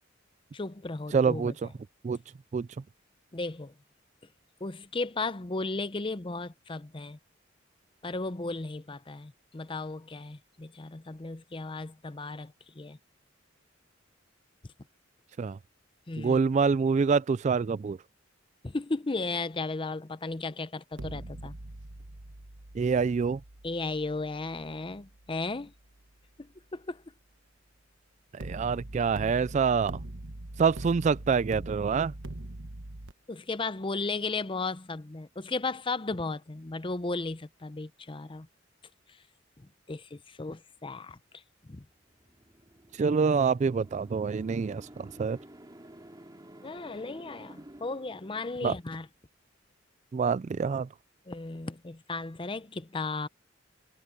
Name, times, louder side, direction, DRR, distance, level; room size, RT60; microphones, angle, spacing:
voice 1, 0.5-1.5 3.3-3.7 4.6-7.2 8.0-13.0 16.1-16.4 18.6-21.5 23.6-25.7 26.4-27.0 33.3-38.5 39.6-41.8 46.6-49.1 51.3-53.3, left 3 dB, 25° left, 0.7 m, -35 dB
voice 2, 1.1-1.7 2.0-2.2 2.5-2.7 15.4-15.6 16.2-18.0 22.8-23.4 28.3-30.0 30.6-32.1 43.0-45.4 48.6-48.8 50.1-50.9, right 5 dB, 35° right, 0.3 m, -26 dB
sound 1, 20.9-26.0 28.4-33.1, right 1 dB, 70° right, 1.2 m, -43 dB
sound 2, 41.9-48.9, right 1 dB, 20° right, 2.5 m, -52 dB
head